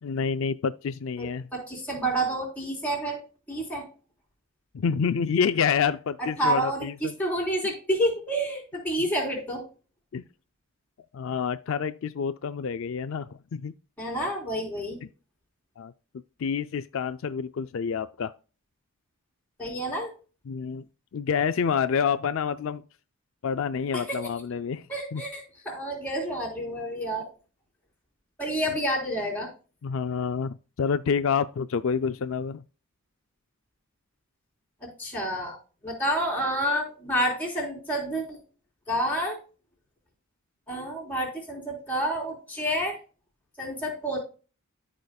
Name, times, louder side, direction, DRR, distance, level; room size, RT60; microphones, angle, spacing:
voice 1, 0.0-1.4 4.7-7.1 10.1-10.2 11.1-13.7 15.8-15.9 16.4-18.3 20.5-20.8 21.1-22.8 23.4-24.9 25.1-25.2 29.8-32.6, left 6 dB, 60° left, 0.4 m, -28 dB
voice 2, 1.2-3.2 3.5-3.9 6.2-9.6 14.0-15.0 19.6-20.1 23.9-24.2 24.9-27.3 28.4-29.5 35.0-35.6 35.8-38.4 38.9-39.4 40.7-43.0 43.6-44.2, right 1 dB, 5° left, 3.9 m, -29 dB
13.5 x 5.1 x 2.3 m
head